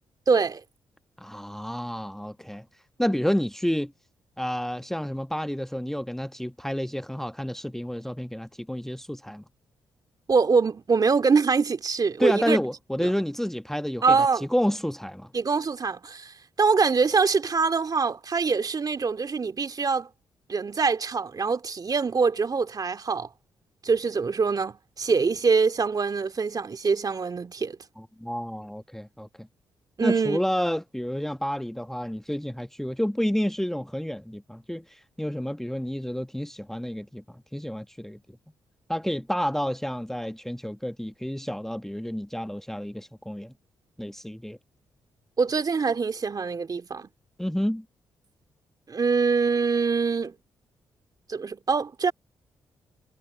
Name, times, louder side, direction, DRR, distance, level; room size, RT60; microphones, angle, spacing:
voice 1, 0.3-0.6 10.3-12.6 13.0-13.1 14.0-14.4 15.3-20.1 20.5-23.3 23.8-27.8 30.0-30.4 45.4-47.1 48.9-50.3 51.3-52.1, right 5 dB, 45° right, 2.3 m, -24 dB
voice 2, 1.2-2.6 3.0-3.9 4.4-9.4 12.2-15.3 28.0-29.5 30.0-38.2 38.9-43.5 44.0-44.6 47.4-47.8, equal, 5° left, 1.3 m, -30 dB
hypercardioid pair, 45°, 9 cm